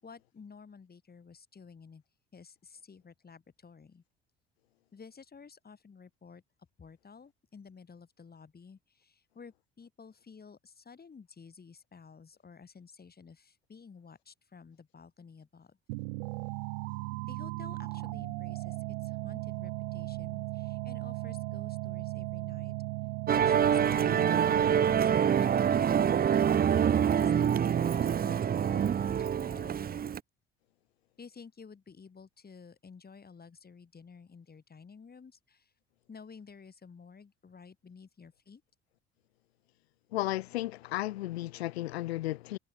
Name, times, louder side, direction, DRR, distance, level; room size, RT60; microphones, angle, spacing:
voice 1, 0.0-2.0 2.3-4.0 4.9-6.4 6.8-15.8 17.3-22.8 23.4-27.3 27.7-30.0 31.2-35.7 36.1-38.6, left 5 dB, 30° left, 7.3 m, -53 dB
sound 1, 15.9-25.1, right 29 dB, 70° right, 1.1 m, -37 dB
Musical instrument, 23.3-30.2, right 8 dB, 30° right, 0.8 m, -26 dB
voice 2, 40.1-42.6, left 17 dB, 80° left, 0.7 m, -34 dB
figure-of-eight pair, 60°, 31 cm